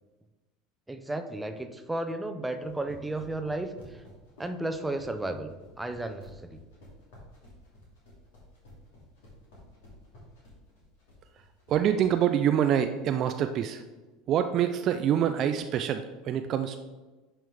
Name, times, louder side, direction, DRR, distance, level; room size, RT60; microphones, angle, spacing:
voice 1, 0.9-3.7 4.4-5.5 5.8-6.6, right 2 dB, 10° right, 7 dB, 0.7 m, -33 dB
sound 1, 2.5-12.1, left 1 dB, 65° left, 2.6 m, -52 dB
voice 2, 11.7-13.8 14.3-16.8, right 9 dB, 45° right, 8 dB, 0.4 m, -26 dB
10.5 x 4.5 x 3.5 m, 1.2 s
figure-of-eight pair, 75°, 0 cm